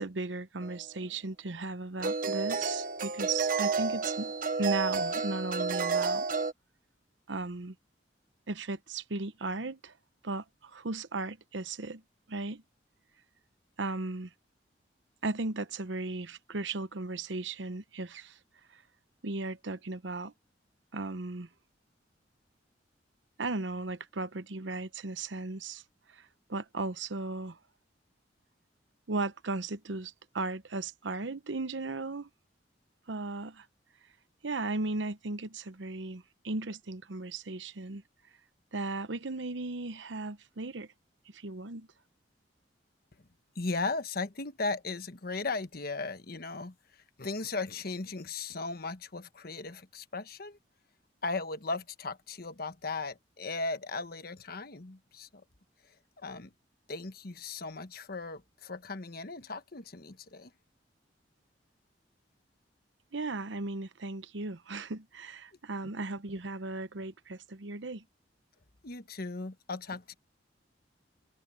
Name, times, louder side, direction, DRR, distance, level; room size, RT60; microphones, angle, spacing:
voice 1, 0.0-4.3 4.6-6.3 7.3-7.7 8.5-9.9 10.2-12.0 12.3-12.6 13.8-14.3 15.2-18.4 19.2-20.3 20.9-21.5 23.4-25.8 26.1-26.2 26.5-27.6 29.1-32.3 33.1-33.7 34.4-38.0 38.7-40.9 41.3-41.9 63.1-68.0, right 3 dB, 80° right, 0.9 m, -36 dB
sound 1, 0.6-0.8 2.0-6.5, right 4 dB, 50° right, 1.0 m, -31 dB
voice 2, 43.5-46.7 47.2-50.6 51.2-55.4 56.2-56.5 56.9-60.5 65.8-65.9 68.8-70.1, left 3 dB, 55° left, 1.3 m, -37 dB
head